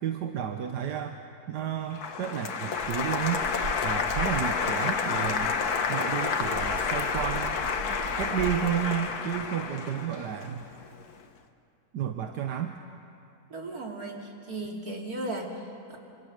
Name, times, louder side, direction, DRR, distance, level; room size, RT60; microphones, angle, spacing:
voice 1, 0.0-1.2 1.5-3.4 3.8-5.6 5.9-7.6 8.2-10.6 11.9-12.8, right 9 dB, 85° right, 5 dB, 1.6 m, -31 dB
Applause, 1.9-11.0, left 5 dB, 70° left, 1.7 m, -30 dB
sound 1, 2.8-8.9, right 4 dB, 40° right, 1.7 m, -40 dB
voice 2, 13.5-16.0, right 2 dB, 65° right, 0 dB, 3.3 m, -36 dB
26.0 x 25.5 x 6.6 m, 2.6 s
omnidirectional pair, 1.7 m